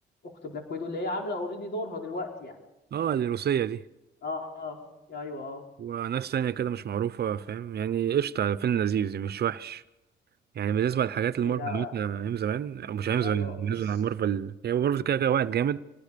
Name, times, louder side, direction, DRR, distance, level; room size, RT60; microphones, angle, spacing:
voice 1, 0.2-2.5 4.2-4.8 5.1-5.6 11.4-11.9 13.2-14.0, left 2 dB, 60° left, 5.0 m, -35 dB
voice 2, 2.9-3.8 5.8-9.8 10.5-15.8, right 9 dB, 55° right, 0.8 m, -28 dB
26.0 x 20.0 x 5.2 m
cardioid pair, 90°, 20 cm